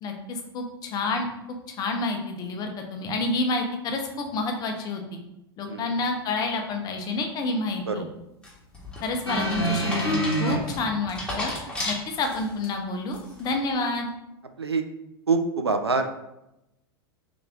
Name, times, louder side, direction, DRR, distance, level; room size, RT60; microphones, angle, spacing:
voice 1, 0.0-1.3 1.8-5.2 5.6-8.1 9.0-11.5 11.8-14.1, left 3 dB, 30° left, 3 dB, 0.7 m, -29 dB
sound 1, 8.4-12.7 13.1-13.5, left 1 dB, 10° left, 1.4 m, -34 dB
sound 2, 9.3-10.6 11.6-11.7, right 1 dB, 90° left, 0.9 m, -25 dB
voice 2, 15.3-16.1, right 4 dB, 85° right, 7 dB, 0.4 m, -25 dB
3.4 x 3.4 x 3.7 m, 0.89 s
figure-of-eight pair, 85°, 13 cm